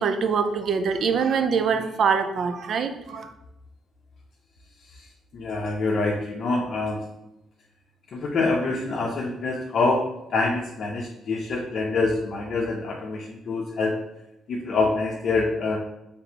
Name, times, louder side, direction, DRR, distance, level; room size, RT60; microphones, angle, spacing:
voice 1, 0.0-3.3, right 6 dB, 60° right, 8 dB, 0.4 m, -24 dB
voice 2, 5.3-7.0 8.1-14.0 14.5-15.8, left 3 dB, 60° left, -2 dB, 0.6 m, -26 dB
4.1 x 3.4 x 2.8 m, 0.86 s
cardioid pair, 90°, 0 cm